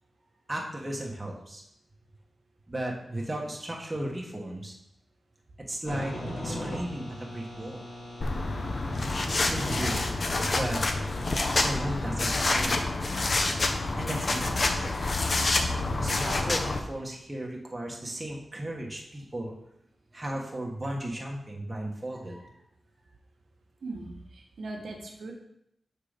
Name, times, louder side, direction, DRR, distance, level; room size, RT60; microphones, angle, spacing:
voice 1, 0.5-1.6 2.7-4.7 5.7-6.1 6.4-7.9 9.2-10.0 10.6-10.8 11.5-12.9 14.0-14.9 16.0-19.5 20.1-22.6, right 1 dB, 20° right, -2 dB, 1.3 m, -35 dB
amp noise, 5.8-12.0, left 1 dB, 75° left, 2.1 m, -39 dB
sound 1, 8.2-16.8, left 2 dB, 45° left, 0.7 m, -27 dB
voice 2, 23.8-25.3, right 2 dB, 80° right, 1 dB, 1.2 m, -39 dB
6.6 x 3.8 x 5.1 m, 0.75 s
wide cardioid pair, 95°, 0 cm